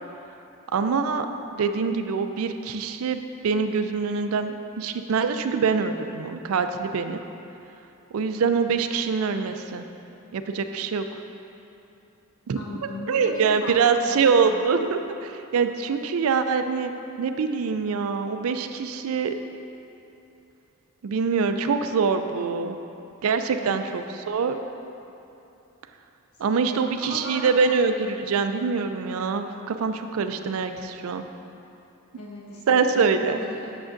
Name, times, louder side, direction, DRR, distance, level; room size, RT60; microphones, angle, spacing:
voice 1, 0.7-1.3 1.5-7.2 8.1-9.9 10.3-11.0 12.5-12.6 13.1-19.4 21.0-22.8 23.2-24.6 26.4-31.2 32.7-33.4, right 5 dB, 70° right, 8 dB, 0.4 m, -24 dB
voice 2, 12.5-14.6 23.6-23.9 26.4-26.6 27.0-27.6 32.1-33.7, left 1 dB, 80° left, -4 dB, 1.3 m, -37 dB
8.6 x 6.9 x 2.5 m, 2.8 s
head